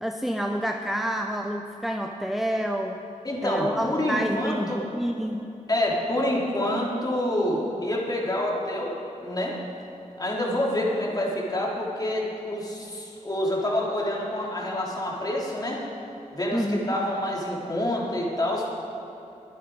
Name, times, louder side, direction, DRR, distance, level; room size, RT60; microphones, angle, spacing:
voice 1, 0.0-3.0 3.4-5.5 16.5-16.9, equal, ahead, 4 dB, 0.7 m, -28 dB
voice 2, 3.2-4.8 5.7-8.9 9.2-9.6 10.2-15.8 16.3-18.7, left 1 dB, 30° left, -3 dB, 3.4 m, -27 dB
24.0 x 9.1 x 4.8 m, 2.9 s
wide cardioid pair, 85°, 14 cm